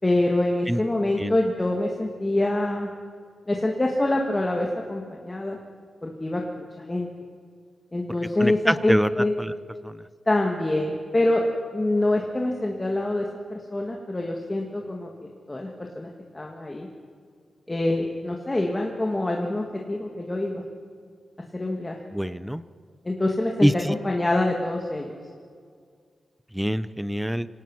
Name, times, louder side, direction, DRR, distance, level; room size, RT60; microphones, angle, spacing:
voice 1, 0.0-3.0 3.5-5.6 6.0-7.1 7.9-9.3 10.3-11.4 11.7-16.9 17.7-20.6 21.5-22.0 23.1-25.2, left 1 dB, 20° left, 1 dB, 1.8 m, -25 dB
voice 2, 8.4-9.1 9.4-9.5 9.8-10.0 22.1-22.6 23.6-23.9 26.5-27.5, equal, 5° right, 16 dB, 0.6 m, -24 dB
26.5 x 18.5 x 6.2 m, 2.1 s
wide cardioid pair, 135°, 0 cm